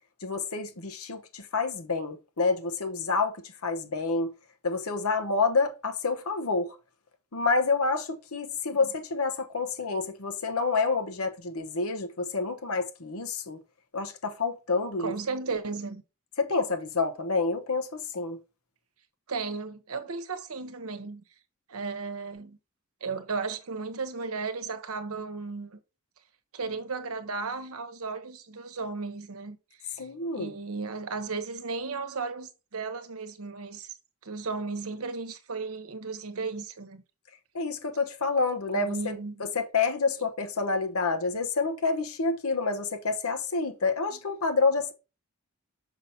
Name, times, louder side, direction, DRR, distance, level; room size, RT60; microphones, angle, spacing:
voice 1, 0.2-3.4 3.6-4.3 4.6-6.7 7.3-13.6 13.9-15.1 16.4-18.4 30.0-30.5 37.5-39.0 39.4-44.9, left 4 dB, 75° left, 1.0 m, -28 dB
voice 2, 15.0-16.0 19.3-21.2 21.7-22.6 23.0-25.8 26.5-29.6 29.8-30.0 30.3-33.9 34.2-37.0 38.7-39.4 44.1-44.2, right 4 dB, 75° right, 0.9 m, -35 dB
6.0 x 5.7 x 2.7 m
head